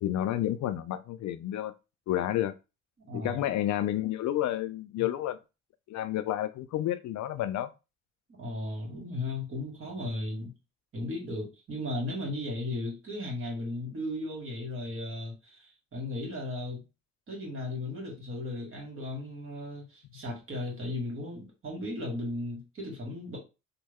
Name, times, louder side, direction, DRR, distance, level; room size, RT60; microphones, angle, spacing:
voice 1, 0.0-1.7 2.1-2.5 3.1-5.4 5.9-7.7 10.0-10.1, left 12 dB, 65° left, 0.5 m, -30 dB
voice 2, 3.1-3.4 5.0-5.1 8.4-10.5 10.9-16.8 17.3-23.4, left 2 dB, 45° right, 1.8 m, -36 dB
3.2 x 2.2 x 3.5 m
cardioid pair, 90°, 30 cm